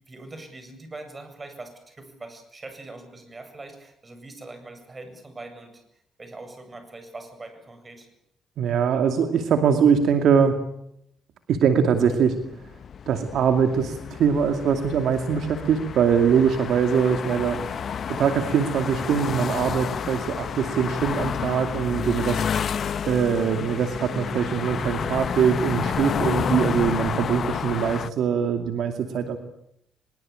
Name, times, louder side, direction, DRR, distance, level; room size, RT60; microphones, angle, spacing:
voice 1, 0.0-8.1, right 2 dB, 25° right, 7 dB, 8.0 m, -42 dB
voice 2, 8.6-10.6 11.5-12.4 13.1-22.5 23.1-29.4, right 7 dB, 70° right, 7 dB, 2.5 m, -22 dB
sound 1, 12.1-28.1, left 7 dB, 55° left, 1.1 m, -30 dB
24.0 x 22.0 x 9.0 m, 0.76 s
cardioid pair, 90°, 0 cm